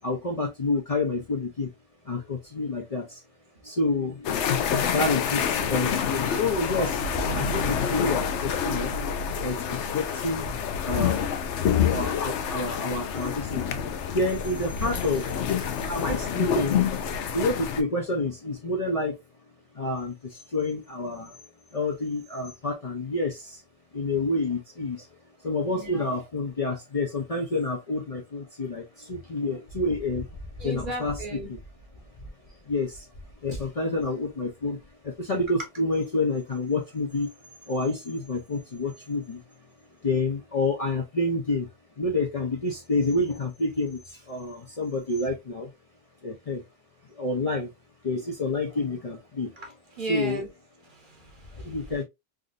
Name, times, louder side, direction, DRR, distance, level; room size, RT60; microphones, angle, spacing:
voice 1, 0.0-1.7 2.0-3.2 3.6-4.3 4.8-8.9 9.4-10.5 10.8-11.3 11.9-13.7 14.1-16.9 17.3-19.2 19.7-21.4 21.7-23.6 23.9-25.1 25.4-30.3 30.6-31.2 31.5-31.6 32.7-33.1 33.4-37.3 37.7-39.4 40.0-41.7 42.0-45.7 46.2-46.6 47.1-47.7 48.0-49.5 50.1-50.4 51.6-52.0, left 2 dB, 40° left, 0.6 m, -28 dB
sound 1, 4.2-17.8, left 7 dB, 85° left, 0.9 m, -27 dB
voice 2, 7.2-7.6 25.7-26.1 30.6-31.5 49.6-50.5 50.9-51.8, right 2 dB, 50° right, 1.1 m, -37 dB
3.6 x 2.6 x 2.4 m
omnidirectional pair, 1.2 m